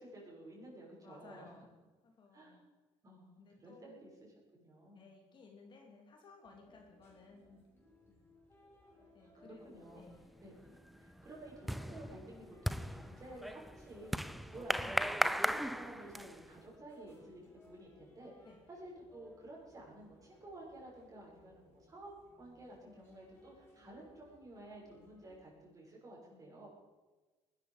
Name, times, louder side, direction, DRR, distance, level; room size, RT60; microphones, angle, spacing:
voice 1, 0.0-1.5 2.3-2.6 3.0-4.1 4.5-5.1 6.5-6.6 7.5-8.2 9.4-10.0 10.4-26.7, right 1 dB, 30° right, -3 dB, 6.6 m, -53 dB
voice 2, 1.0-1.7 2.0-2.6 3.4-4.0 4.9-7.5 9.1-10.3 14.8-15.0 18.4-18.6, left 4 dB, 40° left, 1 dB, 3.1 m, -58 dB
sound 1, 6.4-25.4, left 1 dB, 20° left, 6.9 m, -63 dB
sound 2, 10.0-10.4 10.7-16.5, equal, ahead, 0.4 m, -37 dB
19.5 x 12.5 x 5.2 m, 1.2 s
cardioid pair, 125°, 12 cm